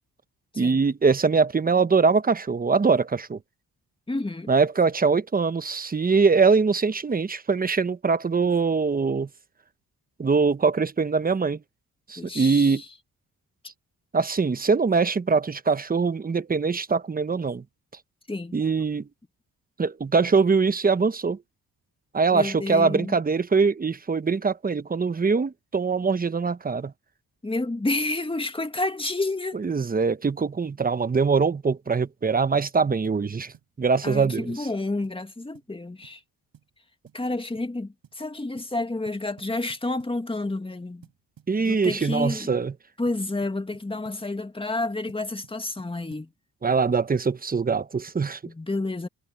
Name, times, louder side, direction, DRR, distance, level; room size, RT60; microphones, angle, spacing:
voice 1, 0.6-3.4 4.5-9.3 10.2-11.6 12.1-12.8 14.1-17.6 18.5-19.1 19.8-21.4 22.1-26.9 29.5-34.7 41.5-42.7 46.6-48.4, right 4 dB, 25° right, 0.9 m, -23 dB
voice 2, 4.1-4.5 12.2-12.9 18.3-18.6 22.3-23.2 27.4-29.6 34.0-36.2 37.1-41.1 41.6-42.5 43.0-46.3 48.5-49.1, left 2 dB, 15° left, 2.0 m, -30 dB
sound 1, 33.0-33.2 33.5-33.7 34.0-34.3 34.5-34.7 35.0-35.2 35.5-35.7 36.0-36.2 36.5-36.7 37.1-37.3 37.6-37.7 38.0-38.2 38.6-38.8 39.1-40.2 41.0-42.2 43.1-44.3 45.1-46.3, right 9 dB, 75° right, 6.4 m, -55 dB
cardioid pair, 85°, 36 cm